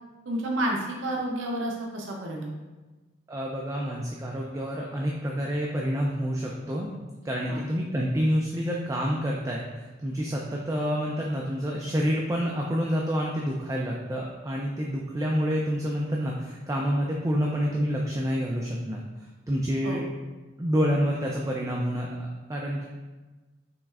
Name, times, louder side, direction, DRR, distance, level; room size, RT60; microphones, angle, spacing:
voice 1, 0.3-2.5 7.5-7.6 19.8-20.0, right 1 dB, 70° right, -1 dB, 0.6 m, -30 dB
voice 2, 3.3-6.9 7.2-19.0 19.5-20.0 20.6-22.9, equal, 15° right, -2 dB, 0.3 m, -28 dB
5.7 x 3.1 x 2.4 m, 1.2 s
head